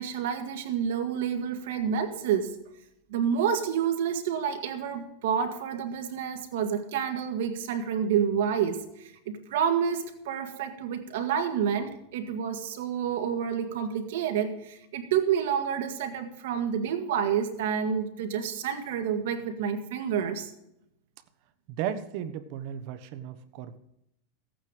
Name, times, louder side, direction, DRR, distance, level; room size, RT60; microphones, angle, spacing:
voice 1, 0.0-2.5 3.1-20.5, right 8 dB, 80° right, 6 dB, 1.8 m, -29 dB
voice 2, 21.7-23.8, right 9 dB, 55° right, 12 dB, 1.1 m, -35 dB
15.5 x 9.0 x 5.0 m, 0.81 s
supercardioid pair, 145°, 0 cm